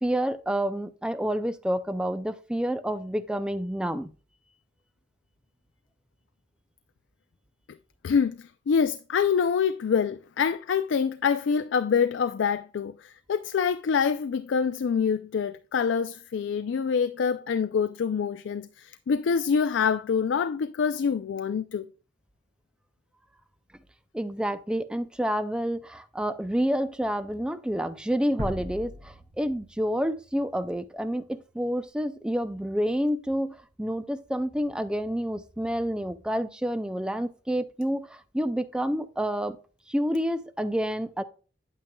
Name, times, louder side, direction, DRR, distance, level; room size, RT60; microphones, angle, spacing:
voice 1, 0.0-4.1 24.1-39.6 39.9-41.2, equal, 5° right, 0.4 m, -29 dB
voice 2, 8.0-8.4 8.7-21.9, left 6 dB, 80° left, 0.4 m, -26 dB
sound 1, 28.4-31.3, equal, 75° right, 2.5 m, -39 dB
8.8 x 8.5 x 2.2 m
head